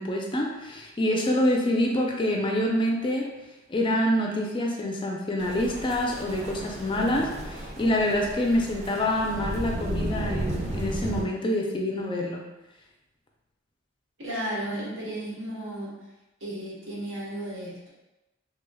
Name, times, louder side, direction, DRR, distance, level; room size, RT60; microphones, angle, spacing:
voice 1, 0.0-3.3 3.7-12.4, left 1 dB, 25° left, 0 dB, 0.4 m, -26 dB
sound 1, 5.4-11.2, right 1 dB, 35° right, 0.4 m, -34 dB
voice 2, 14.2-16.0 16.4-17.9, right 1 dB, 65° right, -6 dB, 1.2 m, -34 dB
3.3 x 3.3 x 2.2 m, 1.0 s
head